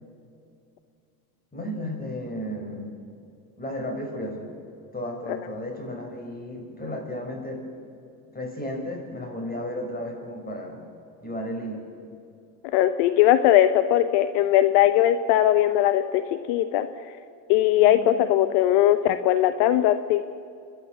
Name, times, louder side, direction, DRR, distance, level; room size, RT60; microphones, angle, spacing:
voice 1, 1.5-2.9 3.6-4.5 4.9-7.6 8.3-10.8 11.2-11.9 17.8-18.1, equal, 20° left, 2 dB, 5.9 m, -33 dB
voice 2, 12.7-16.2 16.5-16.9 17.5-20.2, left 12 dB, 70° left, 11 dB, 1.0 m, -19 dB
29.5 x 11.5 x 8.0 m, 2.6 s
supercardioid pair, 85°, 45 cm